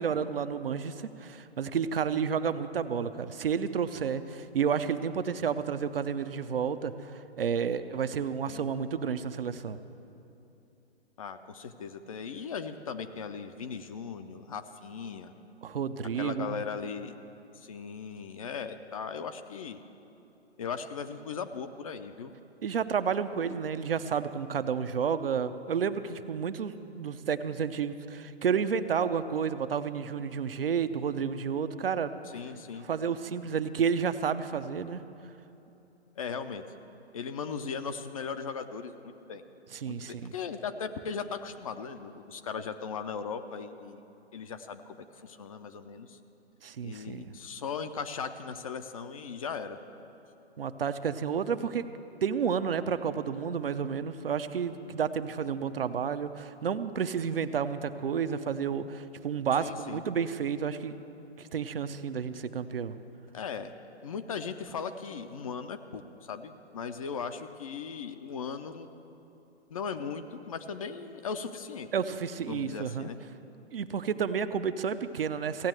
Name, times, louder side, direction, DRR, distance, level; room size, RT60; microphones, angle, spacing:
voice 1, 0.0-9.8 15.6-16.6 22.6-32.1 32.9-35.0 39.7-40.3 46.6-47.4 50.6-51.8 52.2-61.0 61.4-62.9 71.9-73.1 73.7-75.7, right 7 dB, 60° right, 11 dB, 0.7 m, -31 dB
voice 2, 11.2-15.3 16.2-17.2 17.6-19.8 20.6-22.3 32.3-32.9 36.2-36.6 37.1-38.9 39.3-39.4 39.8-44.0 44.3-45.0 45.2-46.2 46.8-49.8 59.6-60.0 63.3-63.7 64.0-66.0 66.3-68.9 69.7-73.2, left 6 dB, 35° left, 8 dB, 0.5 m, -38 dB
16.0 x 8.7 x 7.7 m, 2.9 s
figure-of-eight pair, 130°, 33 cm